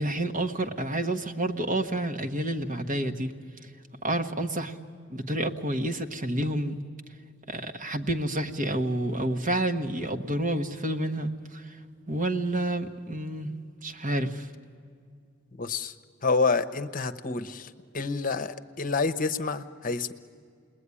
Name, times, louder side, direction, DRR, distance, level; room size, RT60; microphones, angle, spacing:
voice 1, 0.0-3.3 4.0-4.8 5.1-6.8 7.5-11.8 12.1-13.5 13.8-14.5, right 1 dB, 40° right, 5 dB, 1.3 m, -29 dB
voice 2, 15.6-15.9 16.2-20.1, left 4 dB, 45° left, 11 dB, 0.9 m, -28 dB
29.0 x 20.5 x 9.8 m, 2.2 s
head